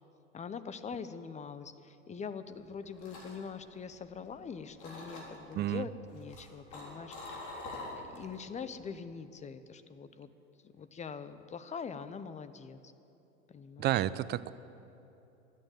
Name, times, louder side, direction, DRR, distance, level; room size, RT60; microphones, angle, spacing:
voice 1, 0.3-7.4 7.9-10.3 10.6-12.9 13.5-13.9, left 6 dB, 20° left, 12 dB, 0.6 m, -43 dB
sound 1, 2.6-4.4 4.8-5.5 6.1-8.3 8.7-9.0, left 2 dB, 60° left, 3.6 m, -45 dB
voice 2, 5.5-5.9 13.8-14.5, right 13 dB, 30° right, 17 dB, 0.4 m, -30 dB
13.0 x 9.2 x 8.9 m, 2.9 s
hypercardioid pair, 100°, 36 cm